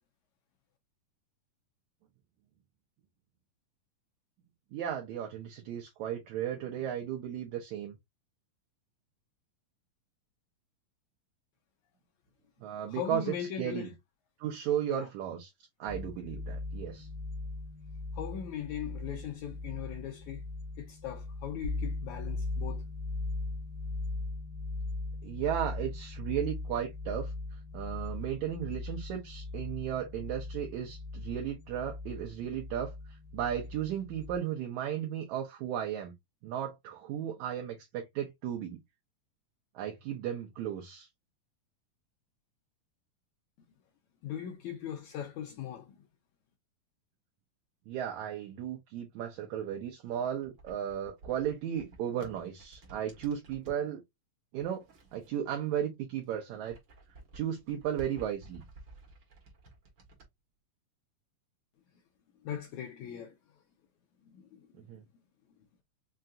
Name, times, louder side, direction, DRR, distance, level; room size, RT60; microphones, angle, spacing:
voice 1, 4.7-8.0 12.6-13.9 14.4-15.5 15.8-17.1 25.2-27.3 27.7-33.0 33.3-36.1 36.4-38.8 39.8-41.1 47.9-54.0 54.5-56.8 57.3-58.7 64.7-65.0, right 10 dB, 75° right, 1.8 m, -35 dB
voice 2, 12.9-13.9 14.9-15.1 18.1-20.4 20.8-22.8 44.2-46.0 62.4-63.4 64.3-64.9, left 9 dB, 75° left, 1.8 m, -39 dB
sound 1, 15.9-34.4, left 2 dB, 60° left, 2.0 m, -39 dB
sound 2, 50.0-53.8 54.5-55.9 56.2-60.3, right 2 dB, 50° right, 1.4 m, -53 dB
5.6 x 2.5 x 2.5 m
omnidirectional pair, 4.0 m